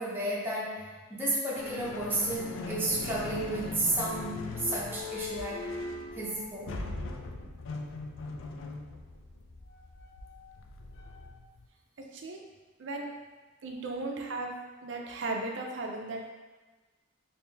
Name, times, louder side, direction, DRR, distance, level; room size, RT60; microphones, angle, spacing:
voice 1, 0.0-5.7 6.2-6.8, right 1 dB, 10° right, -6 dB, 0.6 m, -32 dB
sound 1, 1.6-11.7, left 3 dB, 80° left, 0.4 m, -40 dB
voice 2, 12.0-12.4 12.8-13.1 13.6-14.5 14.8-16.3, right 2 dB, 65° right, 1 dB, 0.5 m, -36 dB
3.1 x 2.6 x 3.3 m, 1.2 s
head